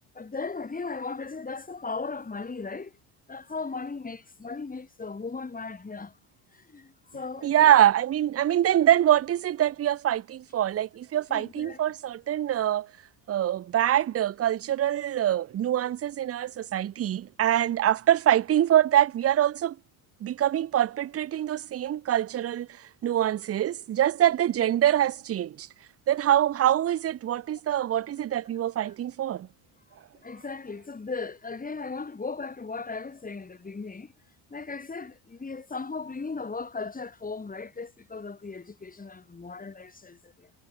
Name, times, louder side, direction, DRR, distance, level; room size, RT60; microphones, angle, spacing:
voice 1, 0.1-2.9 3.3-6.1 6.5-7.8 11.3-11.8 28.8-28.9 30.2-34.1 34.5-40.6, left 4 dB, 15° left, 2.8 m, -37 dB
voice 2, 7.4-12.9 13.3-19.8 20.2-22.7 23.0-25.7 26.1-29.5, right 11 dB, 30° right, 0.6 m, -24 dB
supercardioid pair, 95°, 47 cm